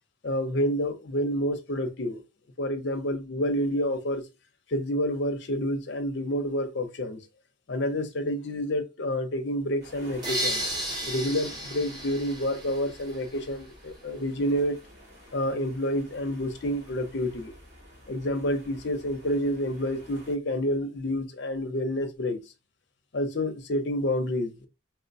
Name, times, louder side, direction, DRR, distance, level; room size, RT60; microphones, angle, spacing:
voice 1, 0.2-2.2 2.6-4.2 4.7-7.2 7.7-10.6 11.1-14.8 15.3-17.5 18.1-22.4 23.1-24.5, equal, 60° left, 0.6 m, -28 dB
sound 1, 9.8-20.4, equal, 65° right, 1.8 m, -49 dB
sound 2, 10.2-13.2, right 1 dB, 20° right, 0.8 m, -33 dB
4.4 x 2.1 x 2.6 m
head